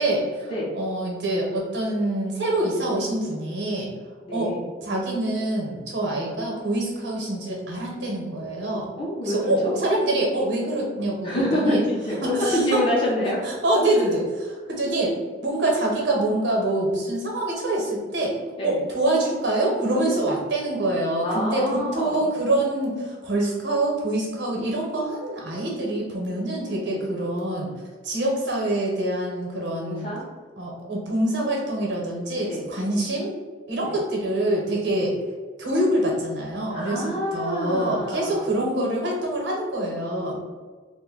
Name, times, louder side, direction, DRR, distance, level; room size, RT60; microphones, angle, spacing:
voice 1, 0.0-3.9 4.3-4.5 4.8-8.9 9.2-11.8 12.2-12.8 13.4-15.2 15.4-18.4 18.6-27.7 28.0-30.1 30.6-33.3 33.7-35.2 35.6-40.4, right 1 dB, 75° right, -2 dB, 0.9 m, -25 dB
voice 2, 4.2-4.7 9.0-9.8 11.2-13.4 18.6-18.8 21.2-22.3 26.9-27.0 29.8-30.3 32.4-32.7 33.8-34.0 36.7-38.5, equal, 30° left, -5 dB, 0.6 m, -27 dB
2.5 x 2.1 x 3.8 m, 1.4 s
head